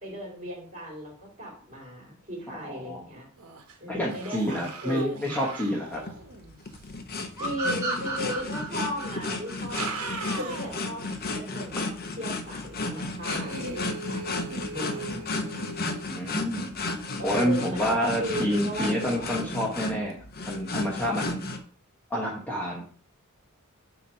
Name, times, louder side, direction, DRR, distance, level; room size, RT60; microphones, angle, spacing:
voice 1, 0.0-3.3 3.8-5.3 7.4-9.9 10.3-11.0 11.3-14.4 14.7-15.2 17.2-19.5, equal, 35° right, -1 dB, 3.0 m, -36 dB
sound 1, 3.4-3.8 4.0-6.9 8.3-8.4 9.5-11.0 11.4-11.5 13.2-16.0, right 4 dB, 80° right, 1.1 m, -39 dB
voice 2, 3.9-6.0 16.2-16.7 17.2-20.2 20.5-21.4 22.1-22.8, equal, 5° left, -3 dB, 1.1 m, -28 dB
sound 2, 5.9-21.6, left 3 dB, 45° left, 0.8 m, -34 dB
sound 3, 7.4-10.7, right 2 dB, 15° right, 1.4 m, -33 dB
7.2 x 2.9 x 5.7 m, 0.42 s
head